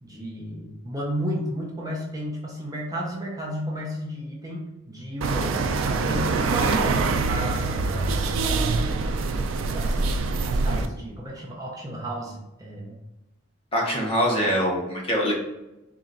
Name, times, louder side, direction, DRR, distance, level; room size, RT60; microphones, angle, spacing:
voice 1, 0.0-8.9 9.7-10.1 10.4-13.0, equal, 20° right, -3 dB, 0.6 m, -33 dB
sound 1, 5.2-10.9, right 3 dB, 85° right, 0.4 m, -24 dB
voice 2, 13.7-15.3, equal, 30° left, -3 dB, 0.9 m, -24 dB
3.9 x 2.4 x 3.9 m, 0.96 s
head